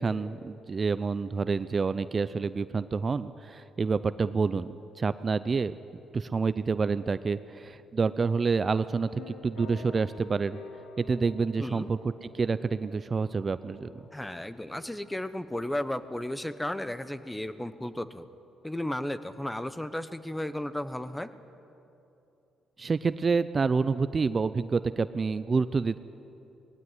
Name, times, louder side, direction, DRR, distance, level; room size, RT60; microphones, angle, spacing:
voice 1, 0.0-5.7 6.1-10.6 11.0-14.0 22.8-26.0, right 4 dB, 35° right, 14 dB, 0.5 m, -28 dB
sound 1, 9.2-17.3, left 3 dB, 80° left, 2.1 m, -50 dB
voice 2, 11.6-11.9 14.1-18.3 18.6-21.3, left 1 dB, 10° left, 13 dB, 1.0 m, -34 dB
19.5 x 17.0 x 9.9 m, 2.8 s
cardioid pair, 90°, 0 cm